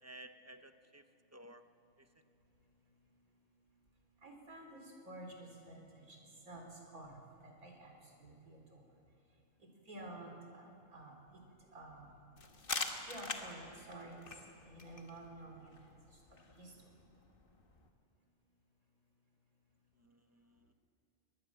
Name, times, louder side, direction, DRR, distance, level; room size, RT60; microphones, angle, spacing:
voice 1, 0.0-1.0 1.3-1.6 2.0-2.1 20.0-20.7, right 1 dB, 20° right, 8 dB, 0.5 m, -55 dB
voice 2, 4.2-6.2 6.5-6.7 6.9-8.8 9.9-10.7 10.9-11.4 11.7-12.1 13.1-14.2 14.7-15.7 16.6-16.7, right 2 dB, 80° right, 2 dB, 4.3 m, -51 dB
sound 1, 12.4-17.9, left 3 dB, 40° left, 1.6 m, -45 dB
22.5 x 19.5 x 7.5 m, 2.8 s
omnidirectional pair, 1.5 m